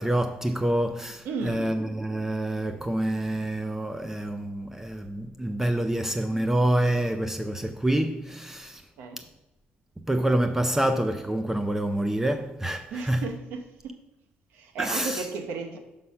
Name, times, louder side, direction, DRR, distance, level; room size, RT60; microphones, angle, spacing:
voice 1, 0.0-8.8 9.2-9.3 10.1-13.2 14.8-15.3, right 1 dB, 10° right, 0.5 m, -27 dB
voice 2, 1.2-1.7 9.0-9.2 12.9-14.0 14.5-15.8, right 4 dB, 85° right, 1.1 m, -34 dB
5.5 x 5.3 x 5.6 m
cardioid pair, 95°, 4 cm